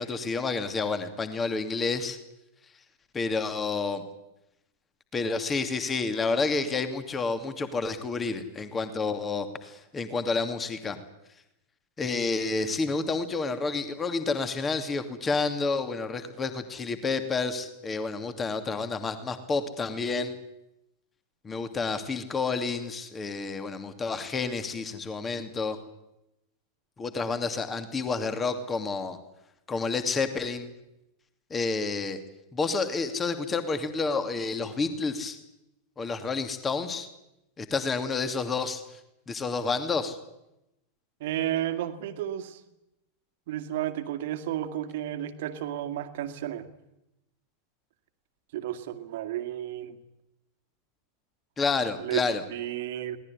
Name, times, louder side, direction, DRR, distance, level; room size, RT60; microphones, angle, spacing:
voice 1, 0.0-2.2 3.1-4.0 5.1-11.0 12.0-20.4 21.4-25.8 27.0-29.2 29.7-30.7 31.5-32.2 32.5-35.4 36.0-37.1 37.6-38.8 39.3-40.2 51.6-52.4, left 4 dB, 20° left, 9 dB, 2.7 m, -29 dB
voice 2, 41.2-42.6 43.5-46.7 48.5-50.0 52.0-53.2, right 12 dB, 55° right, 9 dB, 2.1 m, -32 dB
23.0 x 19.0 x 10.0 m, 0.89 s
figure-of-eight pair, 90°, 0 cm